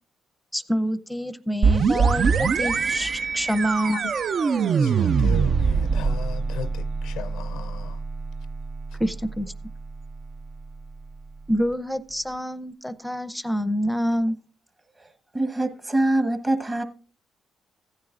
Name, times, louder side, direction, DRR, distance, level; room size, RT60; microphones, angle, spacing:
voice 1, 0.5-4.0 9.0-9.5 11.5-14.4, equal, ahead, 0.6 m, -26 dB
sound 1, 1.6-11.2, right 5 dB, 50° right, 0.4 m, -24 dB
voice 2, 4.8-8.0, left 8 dB, 85° left, 0.5 m, -37 dB
voice 3, 15.0-16.8, right 1 dB, 25° right, 1.3 m, -24 dB
15.5 x 9.6 x 2.5 m
cardioid pair, 90°, 0 cm